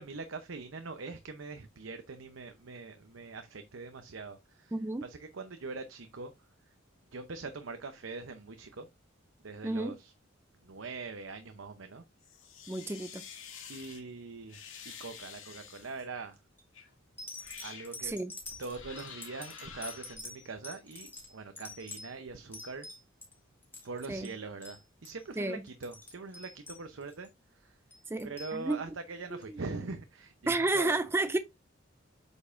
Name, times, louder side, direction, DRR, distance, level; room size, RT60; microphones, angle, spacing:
voice 1, 0.0-4.7 5.0-6.3 7.1-8.9 9.4-10.1 10.6-12.0 13.7-16.4 17.6-18.1 18.6-22.9 23.8-27.3 27.5-27.8 28.2-30.9, right 3 dB, 85° right, 0.8 m, -42 dB
voice 2, 4.7-5.0 9.6-10.0 12.7-13.2 18.0-18.3 24.1-24.3 25.4-25.6 28.1-28.8 29.3-29.6 30.5-31.4, right 2 dB, 10° right, 0.4 m, -31 dB
sound 1, 12.2-14.0 14.5-16.0 16.7-16.9 17.4-17.9 18.6-20.1, left 7 dB, 85° left, 1.8 m, -48 dB
sound 2, 16.3-16.6 17.2-23.3 23.6-24.0 24.2-24.4 24.6-24.8 25.0-25.3 25.7-27.3 27.9-28.6 29.4-29.5, left 2 dB, 10° left, 2.3 m, -46 dB
8.2 x 5.4 x 2.5 m
head